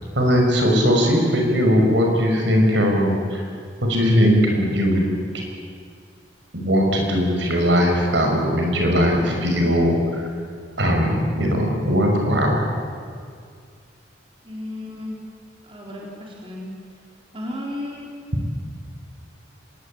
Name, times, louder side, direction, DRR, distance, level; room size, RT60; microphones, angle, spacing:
voice 1, 0.2-3.4 3.8-5.1 5.3-5.4 6.5-10.2 10.8-12.6, equal, 70° right, 1 dB, 6.1 m, -19 dB
voice 2, 14.4-15.2 15.6-16.7 17.3-18.1, left 1 dB, 30° right, -2 dB, 4.2 m, -33 dB
25.0 x 21.0 x 8.9 m, 2.2 s
head